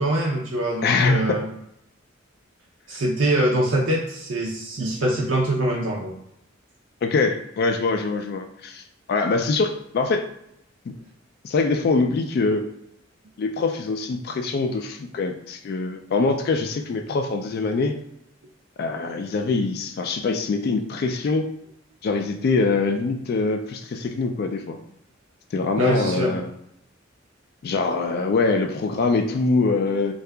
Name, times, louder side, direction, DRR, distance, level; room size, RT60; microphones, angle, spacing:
voice 1, 0.0-1.5 2.9-6.1 25.8-26.3, right 1 dB, 70° right, -2 dB, 0.5 m, -23 dB
voice 2, 0.8-1.4 7.0-8.8 9.1-10.3 11.4-12.7 13.4-18.0 18.8-21.5 22.0-24.8 25.5-26.5 27.6-30.1, left 3 dB, 50° left, 5 dB, 0.3 m, -23 dB
2.7 x 2.3 x 3.4 m, 0.78 s
head